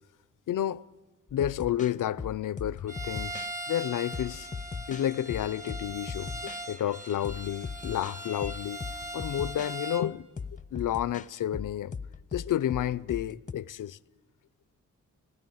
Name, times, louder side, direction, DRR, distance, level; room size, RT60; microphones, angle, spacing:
voice 1, 0.5-0.8 1.3-4.5 4.9-8.8 9.1-10.3 10.7-11.9 12.3-14.0, left 11 dB, 80° left, 0.5 m, -31 dB
sound 1, 1.3-3.6 4.1-6.6 7.2-8.2 8.4-9.7 10.4-13.5, left 5 dB, 25° left, 0.5 m, -39 dB
Bowed string instrument, 2.9-10.1, right 1 dB, 25° right, 1.0 m, -40 dB
20.0 x 15.0 x 9.2 m
wide cardioid pair, 110°, 31 cm